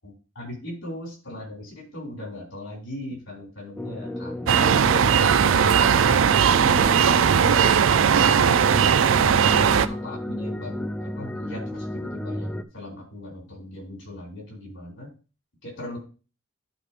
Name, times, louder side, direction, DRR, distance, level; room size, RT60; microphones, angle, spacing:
voice 1, 0.4-4.8 5.9-7.5 8.2-9.4 9.9-15.1 15.6-16.0, left 1 dB, 65° left, -2 dB, 5.2 m, -38 dB
sound 1, 3.8-12.6, left 1 dB, 5° left, 0.3 m, -33 dB
sound 2, 4.5-9.9, right 7 dB, 65° right, 0.4 m, -18 dB
11.5 x 4.9 x 3.3 m, 0.34 s
head